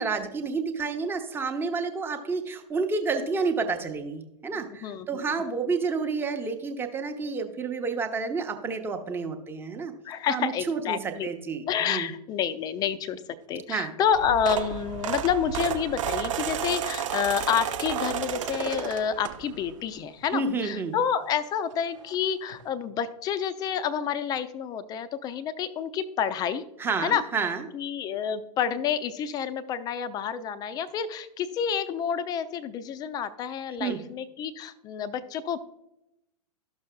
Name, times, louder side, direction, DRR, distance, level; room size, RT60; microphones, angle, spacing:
voice 1, 0.0-9.9 10.3-12.1 13.7-13.9 20.3-20.9 26.8-27.6 33.8-34.0, right 4 dB, 10° right, 4 dB, 0.8 m, -30 dB
voice 2, 4.8-5.6 10.0-11.3 11.7-13.2 13.5-26.6 27.0-27.2 27.7-35.6, left 8 dB, 20° left, 14 dB, 0.5 m, -29 dB
sound 1, 14.1-19.7 20.2-20.5 21.7-21.8 22.0-22.1 22.5-22.6, right 9 dB, 55° right, 0.7 m, -32 dB
13.5 x 6.4 x 2.2 m, 0.85 s
figure-of-eight pair, 100°, 19 cm